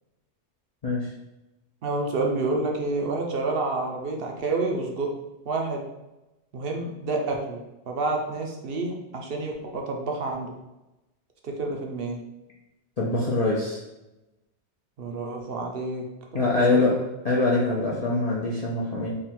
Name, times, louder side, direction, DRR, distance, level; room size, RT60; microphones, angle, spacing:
voice 1, 1.8-5.1 5.5-5.9 6.5-10.6 11.4-12.2 15.0-16.0 16.3-17.1, right 3 dB, 60° right, 1 dB, 0.8 m, -29 dB
voice 2, 13.0-13.8 16.3-16.9 17.2-19.1, left 3 dB, 40° left, -6 dB, 0.6 m, -23 dB
3.8 x 2.3 x 4.2 m, 0.98 s
omnidirectional pair, 1.2 m